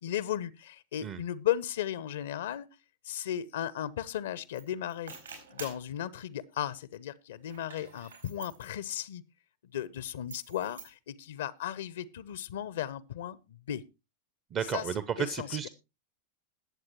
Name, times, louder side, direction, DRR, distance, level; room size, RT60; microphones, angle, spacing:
voice 1, 0.0-2.7 3.0-5.1 5.5-9.2 9.7-13.8 14.7-14.8 15.2-15.7, left 11 dB, 60° left, 0.6 m, -35 dB
sound 1, 4.5-4.6 4.9-5.9 7.4-8.7 10.3-10.9, right 5 dB, 75° right, 4.5 m, -47 dB
voice 2, 14.5-15.7, right 8 dB, 30° right, 0.7 m, -33 dB
21.0 x 7.7 x 3.0 m
figure-of-eight pair, 90°, 0 cm